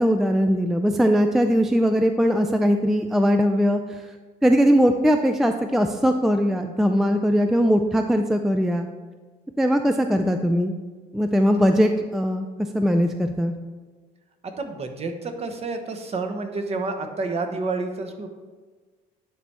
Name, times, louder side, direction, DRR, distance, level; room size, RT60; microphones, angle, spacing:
voice 1, 0.0-4.0 4.4-8.9 9.6-10.8 11.1-12.5 12.7-13.5, equal, ahead, 6 dB, 0.3 m, -20 dB
voice 2, 14.4-18.3, right 3 dB, 35° right, 6 dB, 0.9 m, -29 dB
10.0 x 3.4 x 4.3 m, 1.4 s
cardioid pair, 110°, 17 cm